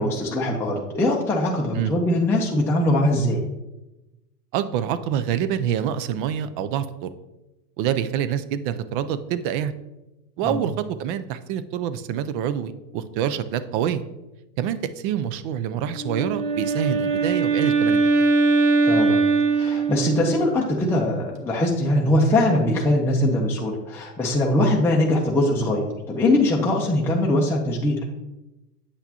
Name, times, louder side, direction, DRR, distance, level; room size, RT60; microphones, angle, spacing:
voice 1, 0.0-3.4 10.4-10.6 18.9-19.2 19.6-28.0, left 1 dB, 5° left, -3 dB, 0.7 m, -21 dB
voice 2, 4.5-7.1 7.8-9.7 10.4-14.1 14.6-18.0, right 9 dB, 35° right, 13 dB, 0.4 m, -26 dB
Wind instrument woodwind instrument, 15.9-20.5, right 3 dB, 65° right, 1.5 m, -21 dB
8.1 x 5.7 x 2.9 m, 0.99 s
hypercardioid pair, 110°, 48 cm